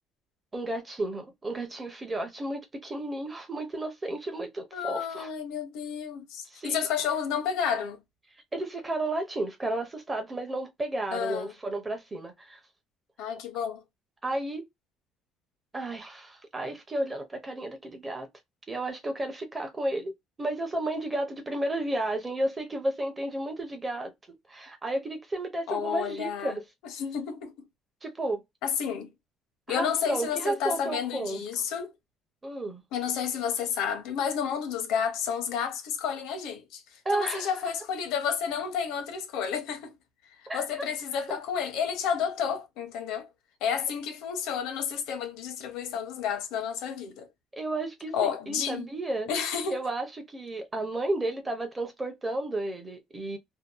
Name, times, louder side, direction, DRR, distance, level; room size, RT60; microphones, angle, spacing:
voice 1, 0.5-5.3 6.5-6.9 8.5-12.6 14.2-14.6 15.7-18.3 18.7-20.1 20.4-24.1 24.5-26.6 28.0-28.4 29.7-31.4 32.4-32.8 37.0-37.7 40.5-40.7 41.3-41.4 47.5-49.3 49.7-53.4, right 1 dB, 15° right, 0.6 m, -32 dB
voice 2, 4.7-8.0 11.1-11.5 13.2-13.8 25.7-26.6 26.8-27.7 28.6-29.1 29.7-31.9 32.9-36.8 37.1-39.9 40.5-43.3 43.6-47.3 48.1-48.9 49.3-49.8, left 7 dB, 80° left, 0.7 m, -31 dB
2.6 x 2.1 x 2.3 m
cardioid pair, 175°, 0 cm